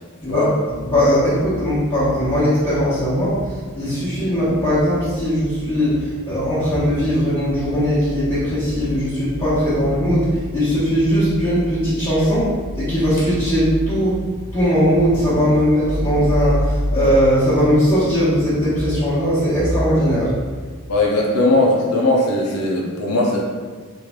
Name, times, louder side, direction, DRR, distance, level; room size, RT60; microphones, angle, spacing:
voice 1, 0.8-14.2 14.5-20.4, equal, 20° left, -14 dB, 1.0 m, -19 dB
voice 2, 20.9-23.4, left 2 dB, 85° left, -2 dB, 0.6 m, -18 dB
3.1 x 2.5 x 3.5 m, 1.5 s
head